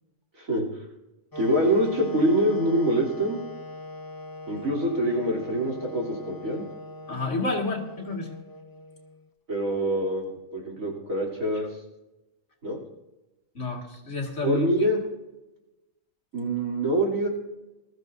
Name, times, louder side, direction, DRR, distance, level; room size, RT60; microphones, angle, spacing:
Wind instrument woodwind instrument, 1.3-9.3, left 1 dB, 30° left, 0.4 m, -41 dB
voice 1, 1.4-3.4 4.5-6.7 9.5-11.7 12.6-12.8 14.4-15.0 16.3-17.3, right 1 dB, 80° right, -2 dB, 3.7 m, -25 dB
voice 2, 7.1-8.4 13.5-14.7, left 3 dB, 60° left, 1 dB, 2.4 m, -30 dB
21.0 x 13.5 x 2.7 m, 1.0 s
omnidirectional pair, 1.4 m